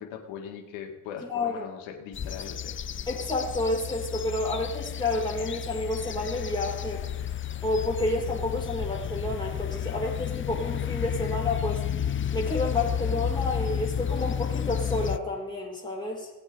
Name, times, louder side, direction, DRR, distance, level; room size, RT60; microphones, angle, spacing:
voice 1, 0.0-2.8, left 8 dB, 75° left, 2 dB, 1.9 m, -40 dB
voice 2, 1.2-1.7 3.1-7.0 7.6-11.8 12.3-16.3, left 2 dB, 10° left, -3 dB, 4.6 m, -30 dB
sound 1, 2.1-15.2, left 9 dB, 25° left, 0.5 m, -32 dB
18.0 x 8.3 x 3.5 m, 1.2 s
hypercardioid pair, 50°, 48 cm